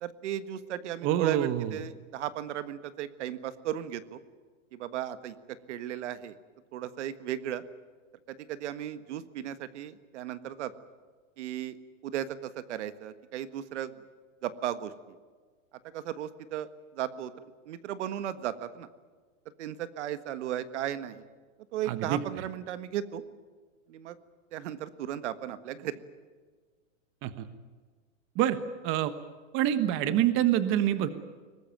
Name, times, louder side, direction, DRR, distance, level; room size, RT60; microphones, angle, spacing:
voice 1, 0.0-4.2 4.7-6.3 6.7-7.6 8.3-10.7 11.4-11.8 12.0-13.9 14.4-15.2 15.9-16.7 16.9-17.3 17.7-18.9 19.6-21.2 21.7-23.2 23.9-24.2 24.5-26.0, right 11 dB, 60° right, 13 dB, 1.6 m, -35 dB
voice 2, 1.0-1.7 21.9-22.2 27.2-27.5 28.3-28.6 28.8-29.1 29.5-31.1, right 12 dB, 30° right, 12 dB, 1.3 m, -26 dB
23.0 x 19.5 x 9.2 m, 1.5 s
supercardioid pair, 150°, 39 cm